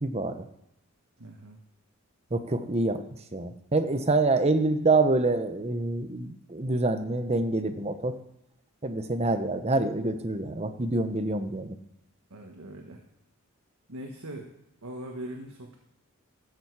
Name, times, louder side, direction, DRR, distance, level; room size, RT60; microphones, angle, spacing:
voice 1, 0.0-0.4 2.3-3.0 3.3-8.2 8.8-11.8, right 2 dB, 30° right, 9 dB, 0.8 m, -26 dB
voice 2, 1.2-1.6 12.3-13.0 13.9-14.5 14.8-15.8, right 1 dB, 85° right, 1 dB, 1.4 m, -41 dB
14.0 x 7.1 x 4.8 m, 0.82 s
head